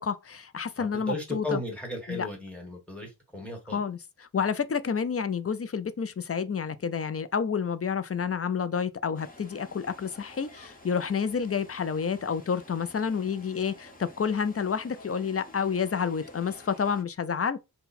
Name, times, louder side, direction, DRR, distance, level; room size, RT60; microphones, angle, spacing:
voice 1, 0.0-1.6 2.1-2.3 3.7-17.6, left 6 dB, 35° left, 0.4 m, -29 dB
voice 2, 0.8-3.8, left 2 dB, 5° left, 1.5 m, -35 dB
sound 1, 9.1-17.0, left 2 dB, 20° left, 1.0 m, -51 dB
3.9 x 2.2 x 4.2 m
wide cardioid pair, 65°, 40 cm